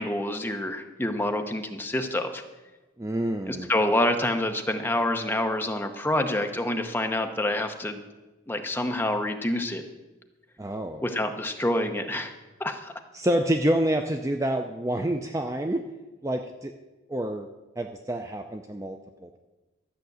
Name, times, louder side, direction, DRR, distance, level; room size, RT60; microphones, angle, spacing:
voice 1, 0.0-2.4 3.5-8.0 8.5-9.8 11.0-12.3 12.6-12.9, left 1 dB, 10° left, 5 dB, 0.8 m, -27 dB
voice 2, 3.0-3.7 10.6-11.0 13.1-15.9 16.2-16.7 17.1-17.5 17.8-19.4, right 1 dB, 15° right, 5 dB, 0.4 m, -28 dB
13.0 x 5.9 x 7.9 m, 1.1 s
head